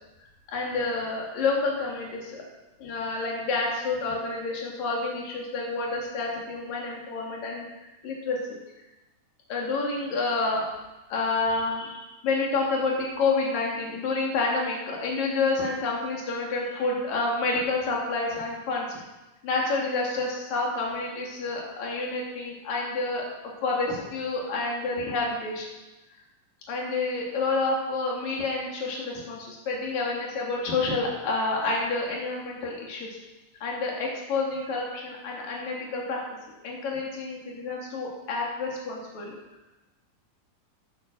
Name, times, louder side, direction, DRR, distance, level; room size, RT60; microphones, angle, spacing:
voice 1, 0.5-2.4 2.8-7.7 8.0-8.4 9.5-10.7 11.1-19.0 19.4-23.3 23.6-25.7 26.7-33.1 33.6-36.2 36.6-39.4, left 3 dB, 50° left, -2 dB, 3.6 m, -29 dB
10.5 x 10.0 x 6.1 m, 1.0 s
omnidirectional pair, 4.3 m